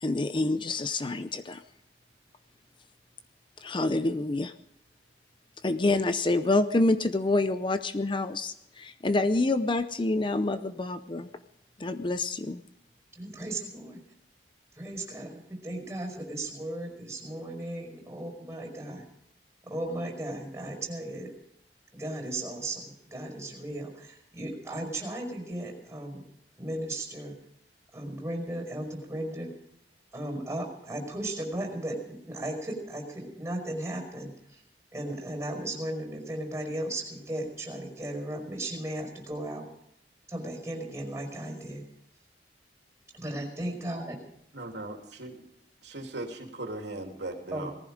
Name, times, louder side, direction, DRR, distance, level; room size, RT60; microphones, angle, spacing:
voice 1, 0.0-1.6 3.6-4.5 5.6-11.3 11.8-12.6, left 2 dB, 30° left, 11 dB, 0.6 m, -27 dB
voice 2, 13.2-14.0 14.7-19.0 19.7-21.3 21.9-26.2 26.6-27.4 27.9-29.5 30.1-34.6 34.9-39.7 40.3-41.8 43.1-44.2 47.5-47.7, right 1 dB, 15° right, 1 dB, 5.2 m, -36 dB
voice 3, 44.5-45.4 45.8-47.8, right 2 dB, 75° right, 2 dB, 3.0 m, -38 dB
19.5 x 14.5 x 5.1 m, 0.74 s
head